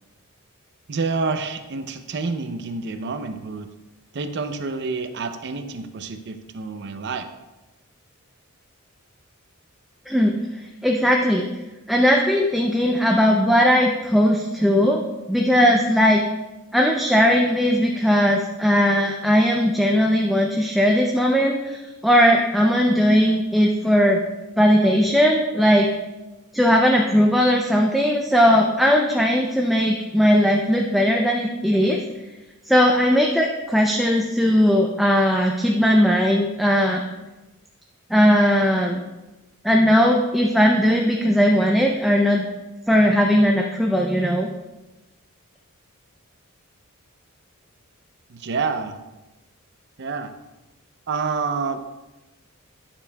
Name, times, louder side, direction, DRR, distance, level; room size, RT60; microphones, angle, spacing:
voice 1, 0.9-3.7 4.1-7.3 48.3-49.0 50.0-50.3 51.1-52.0, right 4 dB, 50° right, 8 dB, 0.5 m, -28 dB
voice 2, 10.1-11.5 11.9-15.0 15.3-16.2 16.7-24.2 24.6-25.9 26.5-32.0 32.6-37.0 38.1-39.0 39.6-42.5 42.9-44.5, equal, ahead, 0 dB, 0.4 m, -18 dB
9.6 x 7.0 x 2.2 m, 1.1 s
head